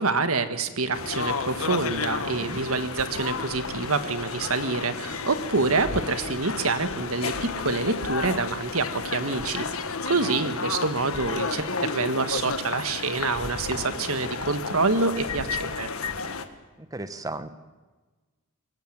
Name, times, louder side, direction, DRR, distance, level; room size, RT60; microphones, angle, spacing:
voice 1, 0.0-9.7 10.1-15.9, right 3 dB, 80° right, 10 dB, 1.7 m, -27 dB
sound 1, 0.9-16.5, left 4 dB, 80° left, 1.6 m, -32 dB
voice 2, 16.9-17.5, right 2 dB, 15° right, 12 dB, 1.1 m, -34 dB
22.5 x 17.5 x 9.0 m, 1.3 s
head